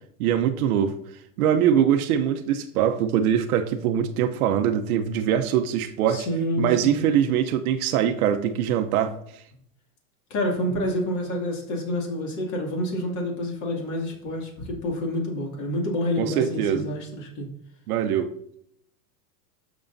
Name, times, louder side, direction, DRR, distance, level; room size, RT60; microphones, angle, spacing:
voice 1, 0.2-1.0 1.4-6.3 6.6-9.1 16.2-16.9 17.9-18.3, right 9 dB, 70° right, 0.9 m, -22 dB
voice 2, 6.1-7.0 10.3-17.5, left 1 dB, 40° left, 2.5 m, -28 dB
12.5 x 6.4 x 2.7 m
supercardioid pair, 145°, 46 cm